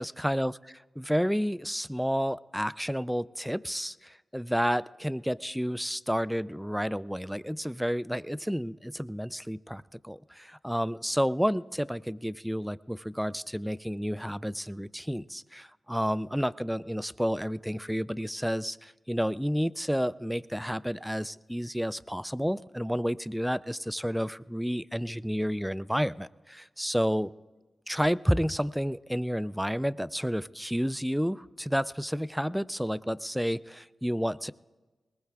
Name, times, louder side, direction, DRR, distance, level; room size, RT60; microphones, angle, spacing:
voice 1, 0.0-27.3 27.9-34.5, equal, ahead, 18 dB, 0.4 m, -30 dB
21.5 x 19.5 x 2.4 m, 1.2 s
cardioid pair, 50°, 0 cm